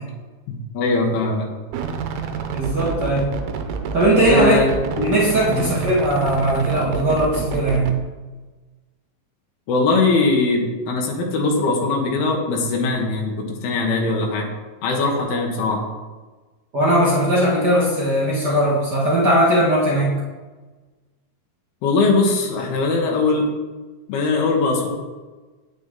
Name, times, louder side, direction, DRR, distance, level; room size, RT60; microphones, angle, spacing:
voice 1, 0.5-1.5 4.3-4.7 5.5-5.7 9.7-14.5 14.8-15.8 21.8-23.5 24.1-24.9, left 3 dB, 75° left, 1 dB, 3.2 m, -20 dB
sound 1, 1.7-7.9, right 6 dB, 90° right, 2.9 m, -28 dB
voice 2, 2.5-3.3 3.9-4.6 5.0-7.9 15.3-15.4 16.7-20.1, right 1 dB, 40° right, -5 dB, 1.5 m, -19 dB
9.5 x 9.4 x 3.8 m, 1.3 s
omnidirectional pair, 4.5 m